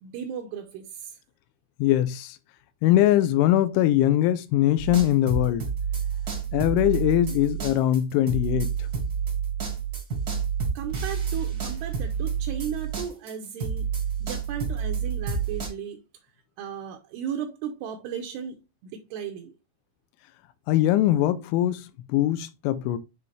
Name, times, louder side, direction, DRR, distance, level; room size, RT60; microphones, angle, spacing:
voice 1, 0.0-1.2 10.7-13.9 14.2-16.0 16.6-19.5, right 8 dB, 75° right, 2.5 m, -35 dB
voice 2, 1.8-2.4 2.8-5.7 6.5-8.9 20.7-23.0, left 13 dB, 85° left, 3.1 m, -22 dB
sound 1, 4.8-13.3 13.6-15.7, right 6 dB, 55° right, 1.0 m, -29 dB
9.0 x 3.5 x 3.3 m
omnidirectional pair, 5.4 m